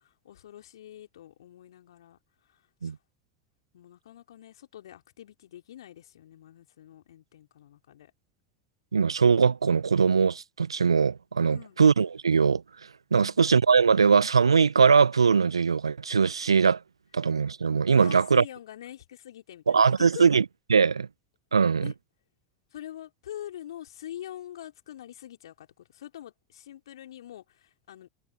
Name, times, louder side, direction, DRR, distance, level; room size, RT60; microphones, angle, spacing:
voice 1, 0.0-2.2 2.5-2.9 3.7-8.1 11.5-11.8 13.1-13.4 18.0-20.2 21.8-21.9 22.7-28.1, left 11 dB, 70° left, 3.7 m, -45 dB
voice 2, 8.9-12.6 13.1-16.8 17.1-18.4 19.7-20.4 20.7-21.1 21.5-21.9, right 5 dB, 85° right, 1.1 m, -21 dB
figure-of-eight pair, 75°, 3 cm